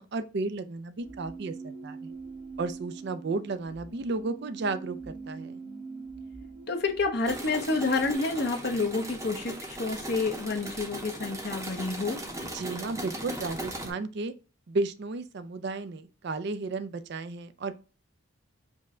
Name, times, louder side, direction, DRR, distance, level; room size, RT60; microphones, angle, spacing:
voice 1, 0.0-2.1 2.6-5.6 12.5-14.3 14.7-17.7, right 3 dB, 50° right, 0.4 m, -33 dB
sound 1, 1.0-8.2, right 4 dB, 90° right, 2.3 m, -43 dB
voice 2, 6.7-12.2, left 3 dB, 50° left, 0.9 m, -29 dB
sound 2, 7.2-13.9, right 1 dB, 15° right, 0.7 m, -38 dB
5.3 x 2.2 x 3.7 m
head